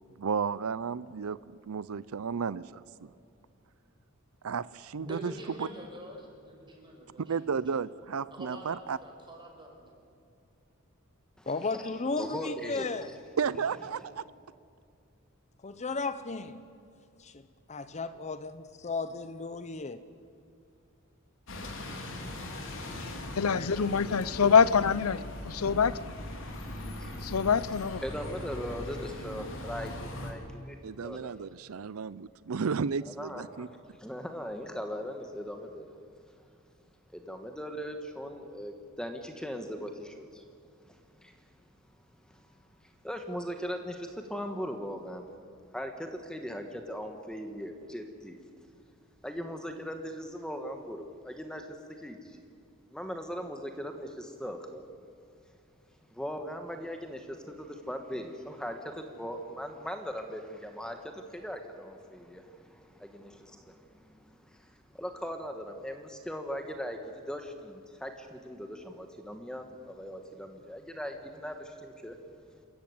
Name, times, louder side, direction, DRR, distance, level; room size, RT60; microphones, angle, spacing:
voice 1, 0.2-3.1 4.4-5.3 5.6-5.7 7.3-9.0 13.4-14.3 30.8-33.7, right 6 dB, 85° right, 0.5 m, -33 dB
voice 2, 5.0-7.4 8.3-9.9, equal, 25° right, 5.7 m, -45 dB
voice 3, 11.5-13.1 15.6-16.6 17.2-17.4 17.7-20.0 23.0-23.1 23.5-23.7, left 3 dB, 35° left, 0.7 m, -35 dB
voice 4, 12.2-13.1 23.7-23.8 25.7-25.9 26.4-27.2 28.0-30.8 31.0-31.3 33.2-36.0 37.1-40.4 40.9-41.4 42.3-42.5 42.8-45.3 45.7-48.4 49.2-52.5 52.9-54.8 56.1-72.2, equal, 5° left, 1.4 m, -39 dB
Bus, 21.5-30.3, left 1 dB, 65° left, 3.4 m, -40 dB
voice 5, 23.4-25.2 25.6-25.9 27.2-28.0, left 6 dB, 90° left, 0.6 m, -24 dB
27.5 x 14.5 x 9.4 m
head